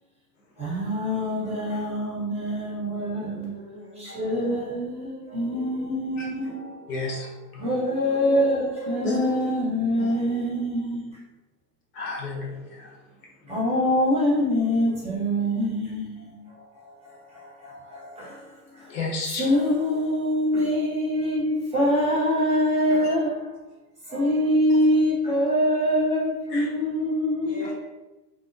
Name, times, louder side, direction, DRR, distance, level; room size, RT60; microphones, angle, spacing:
voice 1, 0.6-3.6 4.0-7.2 7.6-11.2 13.5-16.3 16.7-18.4 18.8-18.9 19.4-23.5 24.1-27.7, equal, 15° right, -6 dB, 0.7 m, -25 dB
voice 2, 2.8-4.8 5.5-6.1 8.1-9.5 9.9-10.1 13.4-13.7 14.8-15.1 27.4-27.7, left 1 dB, 30° left, -7 dB, 0.7 m, -40 dB
voice 3, 6.9-7.3 7.5-7.6 9.0-9.3 11.9-12.9 18.9-19.4 26.5-26.7, left 3 dB, 60° left, -2 dB, 1.0 m, -31 dB
2.3 x 2.1 x 2.5 m, 1.1 s
hypercardioid pair, 105°, 48 cm